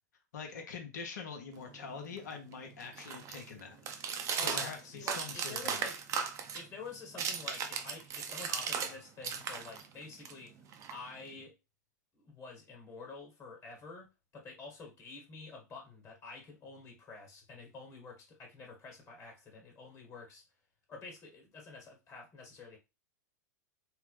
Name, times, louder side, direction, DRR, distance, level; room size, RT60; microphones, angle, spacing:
voice 1, 0.3-3.8 4.4-5.9, left 5 dB, 70° left, 4 dB, 0.8 m, -44 dB
sound 1, 1.6-8.9 9.2-11.4, right 7 dB, 30° right, 0.5 m, -38 dB
voice 2, 4.4-6.0 6.5-11.5 12.1-14.1 14.3-20.4 20.9-22.8, left 4 dB, 30° left, 1 dB, 1.4 m, -49 dB
3.3 x 2.1 x 3.2 m, 0.27 s
hypercardioid pair, 100°, 10 cm